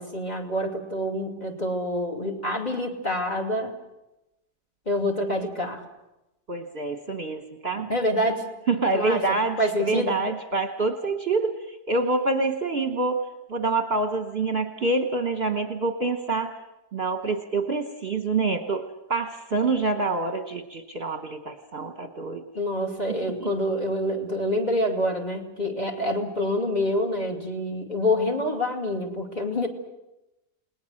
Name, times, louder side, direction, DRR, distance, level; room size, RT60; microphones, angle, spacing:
voice 1, 0.0-3.7 4.9-5.8 7.7-8.4 8.9-9.2 9.6-10.2 22.5-29.7, left 1 dB, 25° left, 3 dB, 2.8 m, -27 dB
voice 2, 6.5-7.9 8.7-13.2 13.5-16.5 16.9-22.4 23.1-23.5, right 3 dB, 40° right, 6 dB, 1.3 m, -26 dB
29.5 x 19.0 x 6.5 m, 0.94 s
omnidirectional pair, 1.7 m